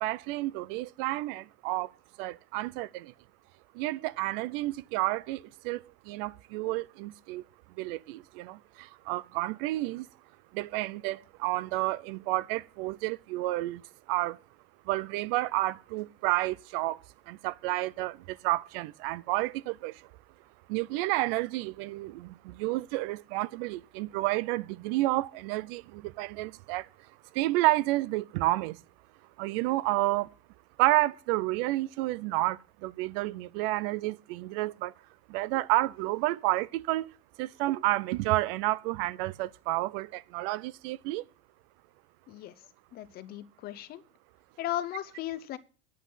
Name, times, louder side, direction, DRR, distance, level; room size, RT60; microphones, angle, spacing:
voice 1, 0.0-1.9 2.2-3.1 3.7-7.4 7.8-10.1 10.5-13.8 14.1-14.4 14.9-20.1 20.7-26.9 27.3-28.8 29.4-30.3 30.8-34.9 35.3-37.1 37.4-41.2, right 18 dB, 65° right, 0.5 m, -30 dB
voice 2, 42.9-44.0 44.6-45.6, left 13 dB, 30° left, 0.6 m, -36 dB
10.0 x 8.5 x 5.4 m
cardioid pair, 180°, 30 cm